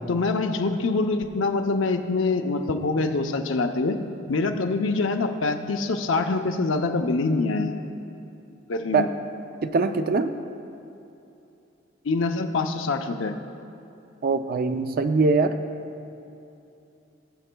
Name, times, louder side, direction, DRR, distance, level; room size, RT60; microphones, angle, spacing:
voice 1, 0.1-4.0 4.3-7.7 8.7-9.1 12.0-13.3, left 3 dB, 70° left, 6 dB, 0.6 m, -25 dB
voice 2, 9.6-10.3 14.2-15.6, right 3 dB, 50° right, 9 dB, 0.4 m, -22 dB
20.0 x 7.7 x 2.2 m, 2.8 s
head